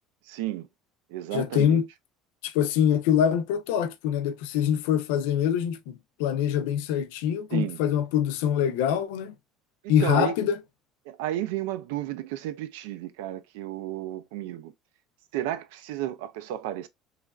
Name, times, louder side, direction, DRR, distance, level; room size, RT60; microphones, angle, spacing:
voice 1, 0.3-0.7 1.1-1.8 7.5-7.8 10.0-10.4 11.1-14.7 15.3-16.9, right 13 dB, 90° right, 0.3 m, -32 dB
voice 2, 1.3-1.9 2.4-5.9 6.2-9.3 9.9-10.6, left 9 dB, 80° left, 0.4 m, -24 dB
3.0 x 2.3 x 2.3 m
cardioid pair, 170°, 0 cm